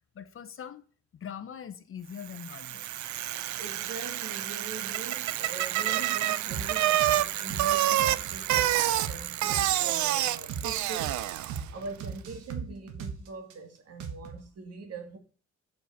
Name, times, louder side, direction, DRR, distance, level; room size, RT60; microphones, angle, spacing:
voice 1, 0.1-0.8 1.1-2.9 5.4-5.5 5.9-6.0, left 8 dB, 45° left, 0.8 m, -42 dB
Bicycle, 2.3-11.7, right 13 dB, 70° right, 0.6 m, -28 dB
voice 2, 3.6-15.2, right 4 dB, 55° right, 2.0 m, -42 dB
sound 1, 6.5-6.7 7.0-7.2 7.5-7.7 8.0-9.7 10.0-10.1 10.5-10.7 11.0-11.2 11.5-11.7 12.0-13.5 14.0-14.4, right 6 dB, 85° right, 1.4 m, -37 dB
6.8 x 5.2 x 5.0 m
cardioid pair, 90°, 30 cm